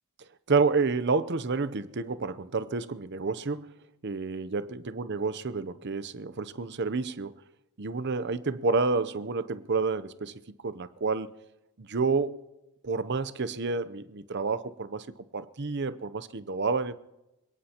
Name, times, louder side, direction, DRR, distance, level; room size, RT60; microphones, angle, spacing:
voice 1, 0.5-3.7 4.0-7.3 7.8-11.3 11.8-12.4 12.8-15.1 15.3-16.9, right 4 dB, 50° right, 0.7 m, -29 dB
27.5 x 17.5 x 3.0 m
head